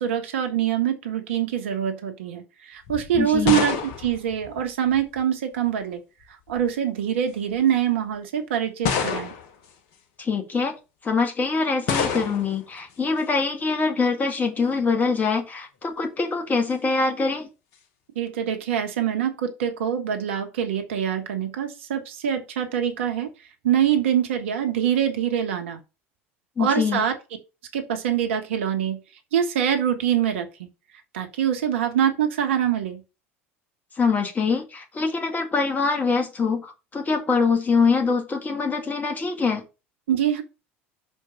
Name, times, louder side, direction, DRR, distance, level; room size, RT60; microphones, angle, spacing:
voice 1, 0.0-6.0 6.5-9.3 18.1-23.3 23.6-25.8 26.6-27.1 27.7-29.0 29.3-30.5 31.1-33.0 40.1-40.4, right 9 dB, 65° right, 1.2 m, -24 dB
sound 1, 2.9-5.2 6.2-6.7 7.5-7.6 8.8-9.7 11.9-12.6, left 6 dB, 55° left, 1.4 m, -28 dB
voice 2, 3.2-3.7 10.2-10.7 11.0-17.5 26.6-27.0 34.0-39.6, left 4 dB, 25° left, 2.0 m, -24 dB
6.4 x 4.5 x 5.5 m
figure-of-eight pair, 70°, 7 cm